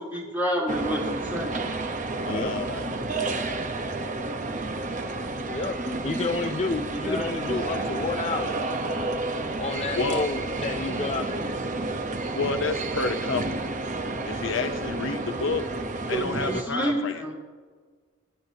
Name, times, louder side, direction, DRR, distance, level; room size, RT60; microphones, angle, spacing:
voice 1, 0.0-1.6 3.2-3.4 5.8-6.6 6.9-7.3 16.1-17.3, equal, 10° right, -5 dB, 3.4 m, -30 dB
sound 1, 0.7-16.6, right 2 dB, 35° right, 0.9 m, -31 dB
voice 2, 2.2-2.9 9.9-10.3 12.3-13.6 14.3-15.6 16.1-17.3, left 3 dB, 65° left, 7 dB, 0.8 m, -29 dB
voice 3, 5.2-5.8 6.0-8.7 9.6-11.7, left 3 dB, 30° left, 6 dB, 0.4 m, -30 dB
28.5 x 10.0 x 2.8 m, 1.5 s
head